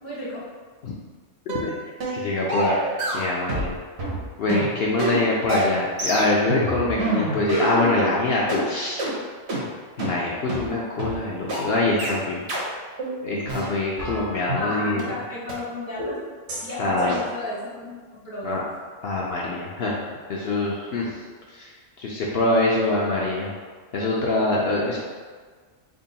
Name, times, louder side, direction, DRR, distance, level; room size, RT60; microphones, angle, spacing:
voice 1, 0.0-0.5 14.5-16.2 16.6-18.6, left 1 dB, 20° right, -8 dB, 0.5 m, -33 dB
sound 1, 1.5-1.7 2.0-2.2 2.5-3.7 4.0-8.1 8.5-8.6 9.0-9.1 9.5-9.6 10.0-10.1 10.5-10.6 11.0-11.1 11.5-11.6 12.0-12.1 12.5-12.6 13.0-13.1 13.5-14.7 15.0-15.1 15.5-15.6 16.0-16.2 16.5-16.6 17.0-17.1, right 1 dB, 60° right, 1.1 m, -27 dB
voice 2, 2.1-3.7 4.4-9.0 10.0-12.4 13.2-15.1 16.8-17.2 18.4-18.6 19.0-20.0 20.3-21.2 21.5-21.7 22.0-23.5 23.9-25.0, left 2 dB, 65° left, -4 dB, 0.7 m, -24 dB
3.6 x 2.2 x 3.9 m, 1.5 s
omnidirectional pair, 1.3 m